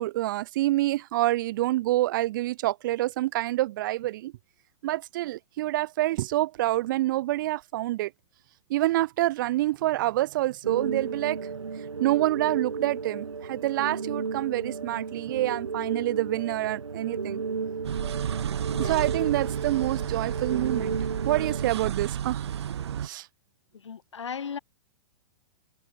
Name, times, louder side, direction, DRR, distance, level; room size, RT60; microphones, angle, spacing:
voice 1, 0.0-4.3 4.8-8.1 8.7-11.5 12.0-17.4 18.8-21.0 21.2-22.4 23.0-23.3, right 16 dB, 40° right, 0.4 m, -27 dB
sound 1, 10.6-21.7, right 5 dB, 75° right, 2.1 m, -34 dB
sound 2, 17.8-23.1, right 9 dB, 60° right, 1.2 m, -32 dB
voice 2, 18.7-19.0 23.8-24.6, left 7 dB, 70° left, 1.8 m, -36 dB
figure-of-eight pair, 110°, 16 cm